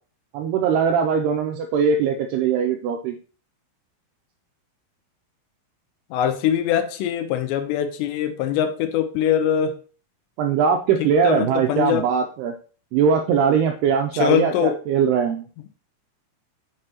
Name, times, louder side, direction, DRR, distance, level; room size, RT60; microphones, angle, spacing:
voice 1, 0.3-3.2 10.4-12.5 12.9-15.5, right 6 dB, 90° right, 4 dB, 2.3 m, -21 dB
voice 2, 6.1-9.8 11.2-12.1 14.1-14.8, left 9 dB, 80° left, 8 dB, 2.7 m, -22 dB
6.8 x 6.7 x 2.9 m, 0.39 s
omnidirectional pair, 5.2 m